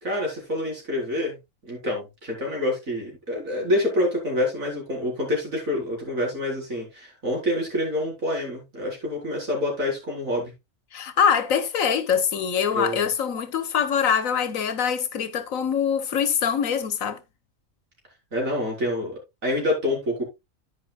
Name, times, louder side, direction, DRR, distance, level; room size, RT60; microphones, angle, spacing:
voice 1, 0.0-1.4 1.6-10.5 12.7-13.1 18.3-20.2, left 1 dB, 80° right, 4.6 m, -27 dB
voice 2, 10.9-17.2, left 7 dB, 80° left, 1.4 m, -24 dB
10.5 x 9.7 x 2.3 m
omnidirectional pair, 1.4 m